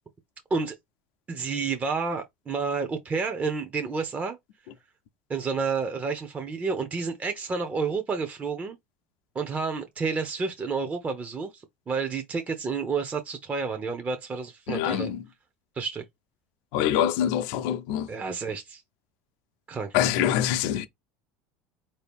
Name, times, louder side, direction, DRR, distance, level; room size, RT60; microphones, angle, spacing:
voice 1, 1.3-4.4 5.3-8.8 9.3-15.1 15.7-16.0 18.1-18.8 19.7-20.0, right 4 dB, 25° right, 0.6 m, -30 dB
voice 2, 14.7-15.2 16.7-18.1 19.9-20.9, left 10 dB, 70° left, 0.5 m, -25 dB
4.2 x 2.7 x 3.5 m
supercardioid pair, 100°, 6 cm